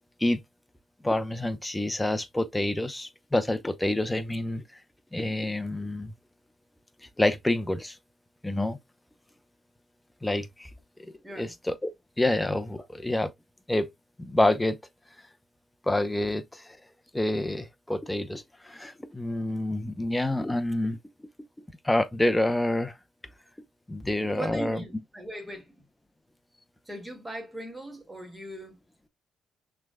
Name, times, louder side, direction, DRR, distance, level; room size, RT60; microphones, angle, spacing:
voice 1, 1.0-4.8 5.1-6.1 7.0-8.0 8.4-8.8 10.2-10.7 11.0-11.9 12.2-13.3 13.7-13.9 14.2-14.8 15.8-16.8 17.1-21.0 21.8-23.0 23.9-24.8, left 1 dB, 10° left, 0.7 m, -27 dB
voice 2, 11.2-11.5 24.3-25.7 26.9-28.8, right 1 dB, 10° right, 2.2 m, -39 dB
5.9 x 3.4 x 2.2 m
cardioid pair, 90°, 0 cm